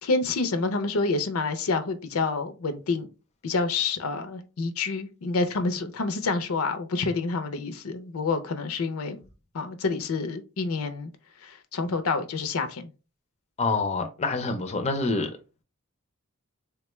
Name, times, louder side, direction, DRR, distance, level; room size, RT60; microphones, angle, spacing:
voice 1, 0.0-3.1 3.4-9.2 9.5-11.1 11.4-12.9, left 3 dB, 80° left, 0.5 m, -28 dB
voice 2, 13.6-15.3, left 3 dB, 30° left, 0.4 m, -26 dB
3.6 x 2.2 x 3.0 m
head